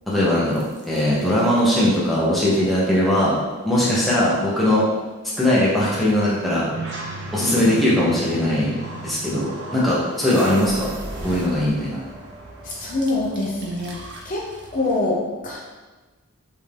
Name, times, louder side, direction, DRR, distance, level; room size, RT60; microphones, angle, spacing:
voice 1, 0.1-3.4 3.6-4.8 5.4-6.7 7.3-8.7 9.0-10.9 11.2-12.0, left 1 dB, ahead, -8 dB, 0.8 m, -20 dB
sound 1, 0.5-1.5 6.7-15.0, right 2 dB, 50° right, 0.7 m, -35 dB
voice 2, 12.6-14.0 14.2-14.5 14.7-15.6, left 2 dB, 40° left, -4 dB, 0.7 m, -25 dB
5.4 x 2.7 x 3.4 m, 1.3 s
head